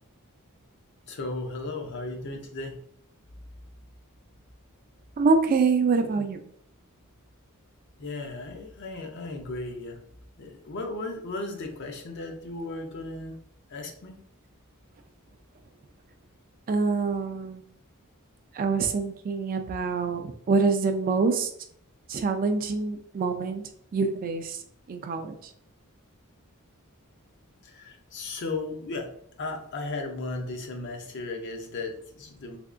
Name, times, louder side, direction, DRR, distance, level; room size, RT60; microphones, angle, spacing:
voice 1, 1.1-2.8 8.0-10.0 10.4-13.4 13.7-14.2 27.6-29.1 29.4-32.6, left 2 dB, 55° left, 3 dB, 0.6 m, -35 dB
voice 2, 5.2-6.4 16.7-17.6 18.5-21.5 22.1-23.6 23.9-24.6 24.9-25.4, right 4 dB, 40° right, 7 dB, 0.3 m, -25 dB
3.4 x 2.8 x 2.5 m, 0.64 s
head